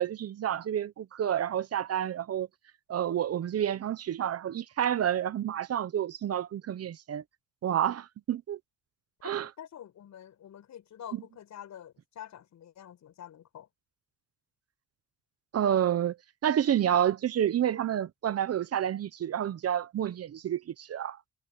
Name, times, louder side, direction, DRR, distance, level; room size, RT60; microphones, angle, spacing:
voice 1, 0.0-2.5 2.9-7.2 7.6-8.6 9.2-9.5 11.1-11.2 15.5-16.2 16.4-21.2, right 10 dB, 55° right, 0.9 m, -29 dB
voice 2, 9.6-13.7, left 10 dB, 65° left, 7.8 m, -47 dB
cardioid pair, 90°, 30 cm